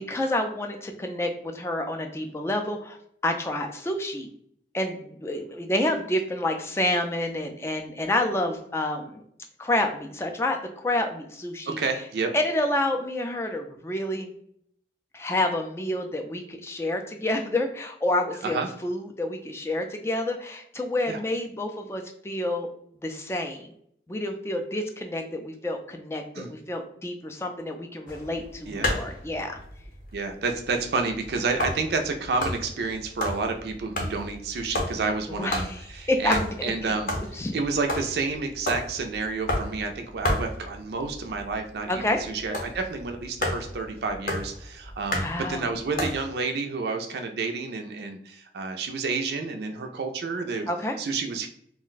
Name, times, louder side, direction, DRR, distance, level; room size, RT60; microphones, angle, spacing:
voice 1, 0.1-3.0 3.2-4.3 4.7-9.2 9.6-11.8 12.3-14.3 15.1-22.7 23.0-23.7 24.1-29.6 35.3-35.8 36.1-36.7 37.3-37.5 41.9-42.2 45.2-45.7 50.7-50.9, left 1 dB, 15° left, 4 dB, 0.3 m, -28 dB
voice 2, 11.7-12.3 18.4-18.7 21.1-21.2 26.3-26.5 28.7-29.0 30.1-37.1 37.5-50.7 51.0-51.5, right 4 dB, 70° right, 5 dB, 0.4 m, -30 dB
sound 1, 28.1-46.2, left 1 dB, 50° left, 0.7 m, -33 dB
2.5 x 2.1 x 3.9 m, 0.68 s
head